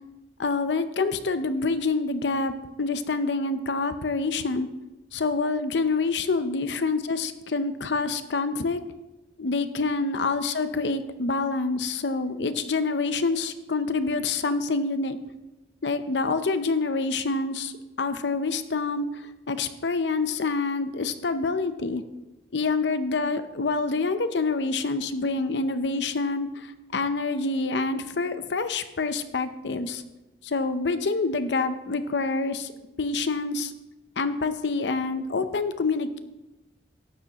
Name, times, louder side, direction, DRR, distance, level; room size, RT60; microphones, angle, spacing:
voice 1, 0.4-2.5 2.8-4.7 5.1-8.8 9.4-15.2 15.8-17.7 18.0-22.0 22.5-30.0 30.4-32.7 33.0-33.7 34.2-36.2, left 3 dB, 85° left, 11 dB, 0.7 m, -27 dB
12.5 x 9.4 x 2.9 m, 1.0 s
head